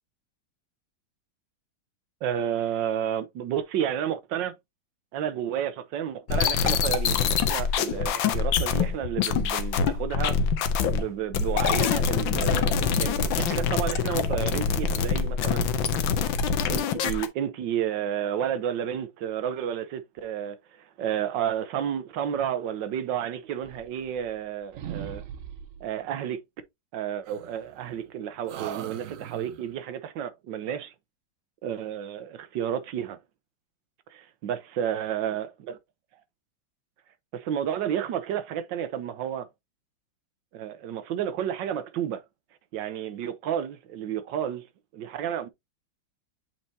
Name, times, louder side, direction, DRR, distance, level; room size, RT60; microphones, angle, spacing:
voice 1, 2.2-4.5 5.1-10.4 10.9-15.7 16.7-25.2 25.8-26.4 26.9-30.9 31.6-33.2 34.1-35.8 37.3-39.5 40.5-42.2 42.7-44.7 44.9-45.5, right 9 dB, 65° right, 1.4 m, -31 dB
sound 1, 6.3-11.1 11.3-17.3, left 6 dB, 75° left, 1.5 m, -25 dB
sound 2, 23.6-24.5 24.7-25.9 27.3-28.1 28.5-29.7, right 10 dB, 85° right, 0.7 m, -40 dB
7.9 x 4.3 x 2.7 m
omnidirectional pair, 2.2 m